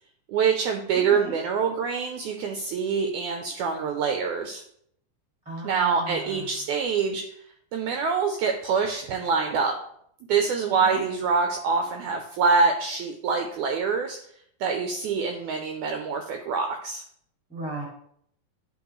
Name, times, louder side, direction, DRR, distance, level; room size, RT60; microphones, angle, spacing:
voice 1, 0.3-4.6 5.6-7.2 7.7-9.8 10.3-14.2 14.6-17.0, right 5 dB, 85° right, 4 dB, 1.7 m, -25 dB
voice 2, 0.9-1.3 5.4-6.5 10.8-11.0 17.5-17.8, right 2 dB, 5° right, -1 dB, 0.6 m, -36 dB
11.0 x 3.8 x 3.1 m, 0.68 s
omnidirectional pair, 4.0 m